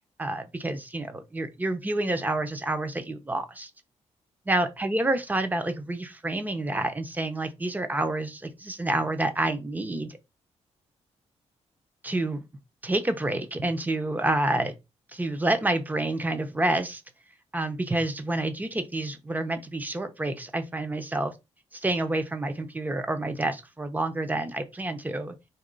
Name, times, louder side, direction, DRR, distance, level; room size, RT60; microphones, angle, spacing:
voice 1, 0.2-3.7 4.5-10.2 12.0-12.4 12.8-14.7 15.1-17.0 17.5-21.3 21.7-25.3, right 2 dB, 15° right, 0.7 m, -28 dB
4.3 x 2.9 x 3.9 m
cardioid pair, 115°, 12 cm